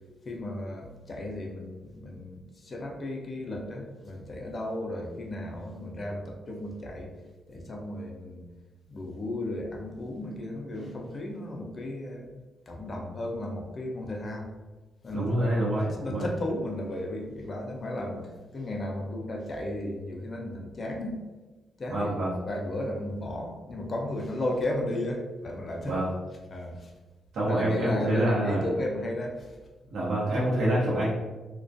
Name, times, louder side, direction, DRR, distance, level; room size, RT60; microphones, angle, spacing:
voice 1, 0.3-7.1 7.5-8.4 8.9-12.3 12.7-14.5 15.0-18.3 18.5-21.2 21.8-26.0 26.5-26.9 27.5-29.5, left 1 dB, 35° left, 1 dB, 0.4 m, -34 dB
voice 2, 15.1-16.3 21.9-22.3 25.8-26.1 27.3-28.6 29.9-31.2, right 1 dB, 70° right, -7 dB, 0.7 m, -26 dB
2.3 x 2.1 x 2.6 m, 1.2 s
cardioid pair, 135°, 0 cm